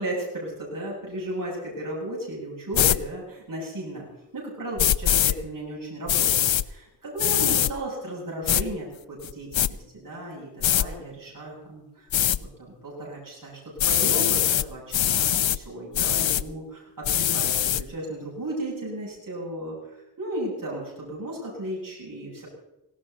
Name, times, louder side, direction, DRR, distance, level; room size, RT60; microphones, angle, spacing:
voice 1, 0.0-4.1 4.3-12.1 12.6-22.5, right 1 dB, 45° right, -3 dB, 7.5 m, -35 dB
sound 1, 2.7-3.0 4.8-5.3 6.1-6.6 7.2-7.7 8.5-8.6 9.2-9.7 10.6-10.9 12.1-12.4 13.8-14.7 14.9-15.6 15.9-16.4 17.0-17.8, left 10 dB, 80° left, 0.8 m, -22 dB
18.5 x 18.0 x 4.1 m, 0.96 s
wide cardioid pair, 105°, 45 cm